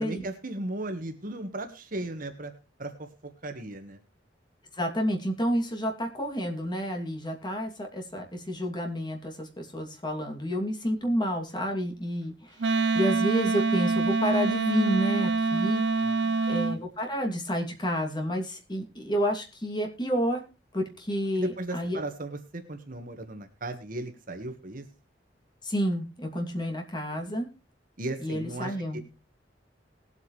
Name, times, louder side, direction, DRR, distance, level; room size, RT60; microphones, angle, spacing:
voice 1, 0.0-2.5 2.8-3.1 3.4-4.0 16.0-16.4 21.4-24.8 27.1-27.2 28.0-29.0, right 2 dB, 50° right, 6 dB, 1.5 m, -36 dB
voice 2, 4.8-15.8 16.5-20.4 20.7-22.0 25.6-27.5 28.2-29.0, equal, 25° left, 2 dB, 2.6 m, -30 dB
Wind instrument woodwind instrument, 12.6-16.8, right 4 dB, 75° right, 0.7 m, -25 dB
20.0 x 8.3 x 3.2 m, 0.31 s
head